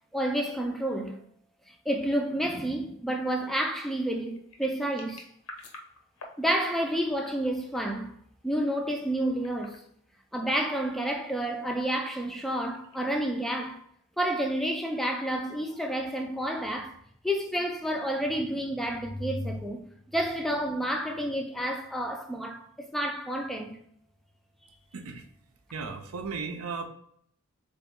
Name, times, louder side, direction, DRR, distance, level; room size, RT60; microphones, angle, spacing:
voice 1, 0.1-1.2 1.7-5.2 6.4-8.1 8.4-9.8 10.3-13.8 14.2-17.0 17.2-19.8 20.1-23.8, right 1 dB, ahead, 0.4 m, -30 dB
sound 1, 3.6-6.4 7.0-7.5 9.3-9.9 10.4-10.7 12.2-13.3, left 2 dB, 80° left, 0.9 m, -49 dB
voice 2, 24.9-25.3 25.7-26.9, right 4 dB, 80° right, 0.6 m, -35 dB
3.9 x 3.4 x 3.6 m
head